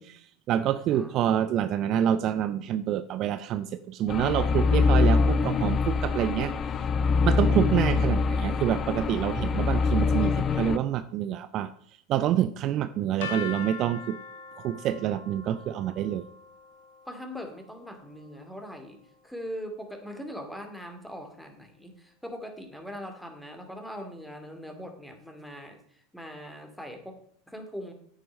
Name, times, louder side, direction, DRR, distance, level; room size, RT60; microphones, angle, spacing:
voice 1, 0.0-6.9 7.2-11.7 12.1-14.2 14.6-16.3, right 10 dB, 45° right, 13 dB, 0.5 m, -27 dB
voice 2, 0.9-1.5 17.1-19.0 19.2-27.9, equal, 5° left, 5 dB, 2.5 m, -41 dB
sound 1, 4.1-10.8, left 4 dB, 30° left, 0.6 m, -24 dB
sound 2, 13.2-19.1, left 6 dB, 70° left, 2.0 m, -43 dB
9.2 x 9.1 x 5.3 m, 0.63 s
hypercardioid pair, 85°, 0 cm